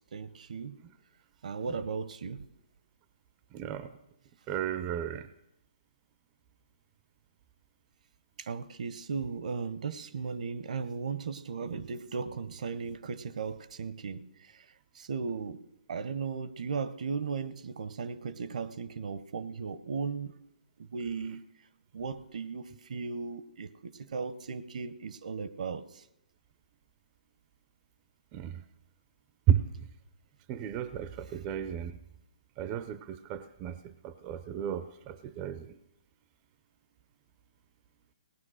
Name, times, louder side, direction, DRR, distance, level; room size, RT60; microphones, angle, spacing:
voice 1, 0.1-0.8 1.4-2.4 8.4-14.3 15.0-15.6 15.9-20.3 20.8-21.4 21.9-25.8, right 5 dB, 65° right, 16 dB, 0.8 m, -36 dB
voice 2, 4.5-5.1 29.5-29.6 30.5-30.9 31.4-31.9 32.6-33.0 33.3-33.7 34.3-34.8 35.4-35.5, right 10 dB, 20° right, 13 dB, 0.5 m, -30 dB
17.5 x 9.4 x 6.3 m, 0.84 s
hypercardioid pair, 155°, 4 cm